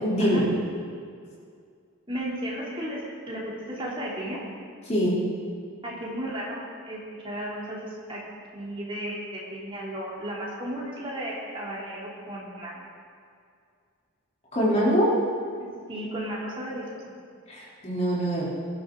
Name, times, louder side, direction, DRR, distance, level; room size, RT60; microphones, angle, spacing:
voice 1, 0.0-0.5 4.9-5.2 14.5-15.1 17.5-18.5, equal, 30° left, -6 dB, 3.4 m, -23 dB
voice 2, 2.1-3.0 3.3-4.4 5.8-7.0 7.2-8.2 8.5-12.9 15.9-17.0, right 1 dB, 25° right, -5 dB, 3.0 m, -34 dB
19.0 x 12.0 x 3.9 m, 2.2 s
head